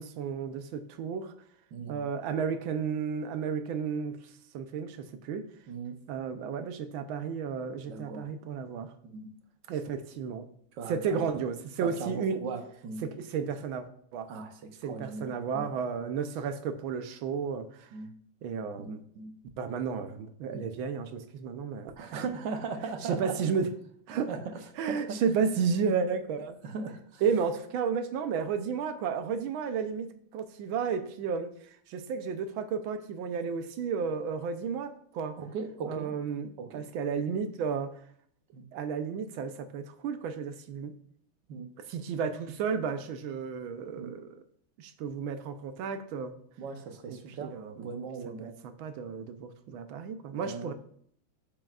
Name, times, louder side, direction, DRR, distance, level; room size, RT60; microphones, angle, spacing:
voice 1, 0.0-1.3 1.9-4.2 4.5-5.5 6.1-8.9 9.7-10.5 10.9-12.4 13.0-13.9 14.1-14.3 14.8-17.9 18.4-19.0 19.6-22.2 23.0-23.7 24.1-24.3 24.8-26.6 27.2-31.5 31.9-35.4 35.9-37.9 38.7-41.0 41.9-44.4 44.8-46.3 47.1-47.9 48.4-50.7, right 6 dB, 90° right, 9 dB, 1.5 m, -32 dB
voice 2, 1.7-2.0 5.7-6.0 7.8-8.3 9.0-9.3 10.8-11.3 11.8-13.0 14.3-15.7 17.9-18.1 18.8-19.3 20.5-20.7 22.0-23.3 24.1-25.2 26.6-27.2 35.4-36.1 36.6-36.8 38.5-38.6 41.5-41.7 44.0-44.1 46.6-48.5 50.4-50.7, right 5 dB, 70° right, 7 dB, 1.5 m, -39 dB
8.9 x 7.7 x 2.4 m, 0.63 s
omnidirectional pair, 2.1 m